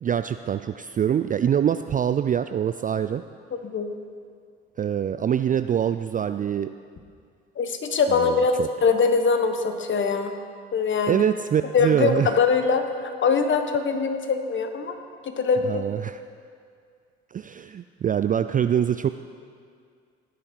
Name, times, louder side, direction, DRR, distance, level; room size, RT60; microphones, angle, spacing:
voice 1, 0.0-3.2 4.8-6.7 8.1-8.7 11.1-12.3 15.6-16.2 17.3-19.1, right 9 dB, 30° right, 11 dB, 0.4 m, -24 dB
voice 2, 7.6-10.3 10.7-11.2 11.7-15.0 15.2-15.8, left 5 dB, 40° left, 7 dB, 1.4 m, -23 dB
16.5 x 10.0 x 4.6 m, 2.2 s
hypercardioid pair, 55°, 29 cm